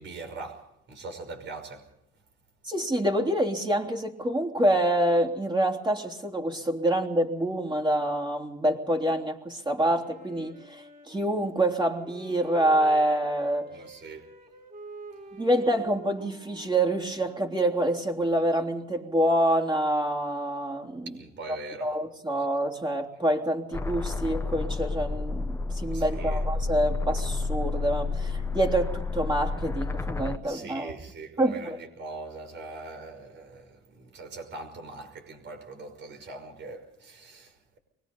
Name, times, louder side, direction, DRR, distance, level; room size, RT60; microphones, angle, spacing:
voice 1, 0.0-1.9 13.7-14.3 21.1-22.0 25.9-26.4 30.4-37.8, right 3 dB, 65° right, 5.6 m, -42 dB
voice 2, 2.6-13.7 15.3-21.1 21.5-30.9 31.4-31.8, right 1 dB, 25° right, 3.4 m, -26 dB
Wind instrument woodwind instrument, 10.0-18.0, right 3 dB, 40° right, 6.6 m, -47 dB
sound 1, 23.7-30.4, left 3 dB, 15° left, 1.1 m, -30 dB
24.0 x 21.0 x 5.5 m
cardioid pair, 90°, 20 cm